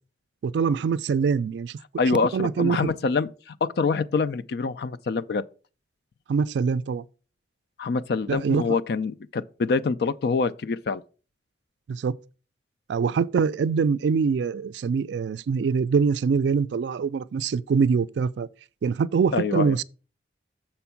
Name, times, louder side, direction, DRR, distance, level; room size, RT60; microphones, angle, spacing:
voice 1, 0.4-1.8 2.1-2.8 6.3-7.0 8.3-8.8 11.9-12.1 12.9-18.5 18.8-19.8, right 5 dB, 75° right, 0.3 m, -24 dB
voice 2, 2.0-5.4 7.8-11.0 19.3-19.8, left 4 dB, 60° left, 0.4 m, -25 dB
6.9 x 4.4 x 5.8 m
head